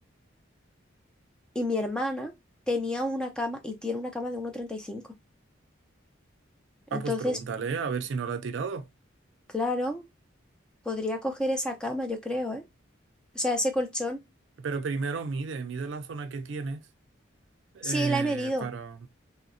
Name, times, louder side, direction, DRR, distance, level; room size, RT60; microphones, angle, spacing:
voice 1, 1.6-2.3 2.7-5.0 6.9-7.4 9.5-10.0 10.9-12.6 13.3-14.2 17.8-18.7, left 1 dB, 5° left, 0.4 m, -29 dB
voice 2, 6.9-8.9 14.6-16.8 17.7-19.1, right 4 dB, 65° right, 0.4 m, -33 dB
3.6 x 2.0 x 2.4 m
head